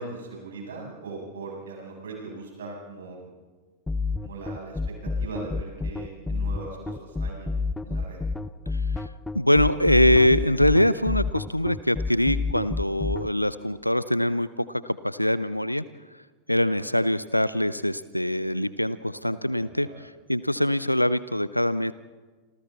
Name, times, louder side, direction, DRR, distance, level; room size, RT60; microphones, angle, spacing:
voice 1, 0.0-3.3 4.2-8.2 19.2-19.9, right 3 dB, 65° right, -1 dB, 7.7 m, -40 dB
sound 1, 3.9-13.3, left 3 dB, 10° left, 0.8 m, -28 dB
voice 2, 8.7-15.8 16.1-16.2 16.5-21.9, left 1 dB, 90° left, 17 dB, 0.5 m, -23 dB
28.0 x 26.5 x 4.2 m, 1.3 s
figure-of-eight pair, 90°, 0 cm